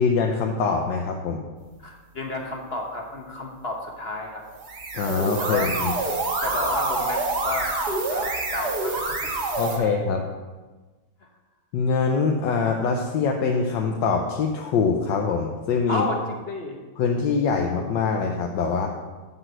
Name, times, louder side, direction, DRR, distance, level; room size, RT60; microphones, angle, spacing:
voice 1, 0.0-1.4 4.9-5.9 9.6-10.2 11.7-16.1 17.0-18.9, left 5 dB, 80° left, 2 dB, 1.5 m, -24 dB
voice 2, 1.8-4.4 5.4-5.7 6.4-7.7 8.1-9.3 9.8-9.9 15.9-16.8, left 2 dB, 40° left, 1 dB, 1.0 m, -31 dB
sound 1, 4.5-9.8, right 2 dB, 65° right, 2.0 m, -27 dB
7.6 x 6.0 x 7.9 m, 1.3 s
omnidirectional pair, 1.9 m